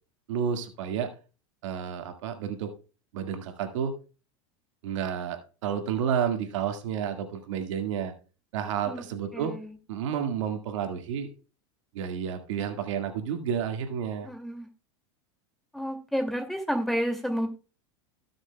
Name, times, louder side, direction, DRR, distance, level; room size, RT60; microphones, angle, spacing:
voice 1, 0.3-1.1 1.6-2.7 3.1-3.9 4.8-8.1 8.5-9.5 9.9-11.3 11.9-14.3, right 8 dB, 75° right, 5 dB, 1.9 m, -30 dB
voice 2, 9.3-9.7 14.2-14.7 15.7-17.5, equal, ahead, 5 dB, 2.3 m, -30 dB
17.5 x 6.6 x 2.2 m, 0.35 s
hypercardioid pair, 110°, 16 cm